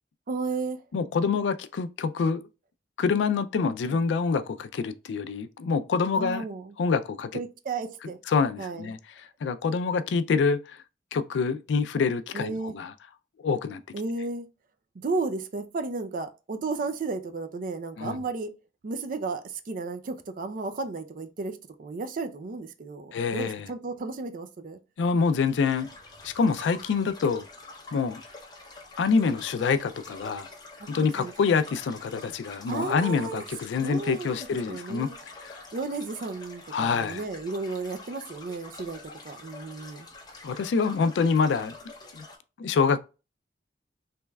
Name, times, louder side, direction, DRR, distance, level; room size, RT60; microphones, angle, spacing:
voice 1, 0.3-0.8 6.1-6.7 7.3-8.2 8.6-8.9 12.3-12.7 13.9-14.5 15.0-18.5 18.8-24.8 30.8-31.3 32.7-33.4 33.8-35.1 35.7-39.0 39.2-40.1, right 3 dB, 50° right, 0.4 m, -33 dB
voice 2, 0.9-2.5 3.0-6.4 6.8-7.3 8.3-10.8 11.1-12.9 13.4-13.8 18.0-18.2 23.1-23.7 25.0-25.9 26.2-27.5 27.9-28.2 29.0-30.5 30.9-35.1 35.4-35.6 36.7-37.2 40.4-41.7 42.1-42.2 42.6-43.0, left 5 dB, 75° left, 0.3 m, -26 dB
sound 1, 25.2-42.4, left 2 dB, 25° left, 0.7 m, -46 dB
3.4 x 3.0 x 2.2 m
head